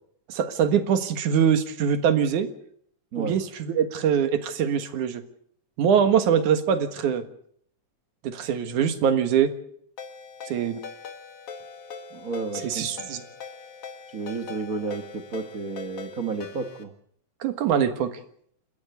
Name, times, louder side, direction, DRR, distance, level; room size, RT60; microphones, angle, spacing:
voice 1, 0.3-2.5 3.2-5.2 5.8-7.2 8.2-9.5 10.5-10.8 12.6-13.2 17.4-18.1, right 8 dB, 80° right, 8 dB, 3.1 m, -23 dB
voice 2, 3.1-3.4 12.1-13.1 14.1-16.9, right 4 dB, 50° right, 9 dB, 1.0 m, -32 dB
Ringtone, 10.0-16.8, left 5 dB, 55° left, 2.6 m, -41 dB
28.5 x 13.0 x 8.2 m, 0.66 s
omnidirectional pair, 3.4 m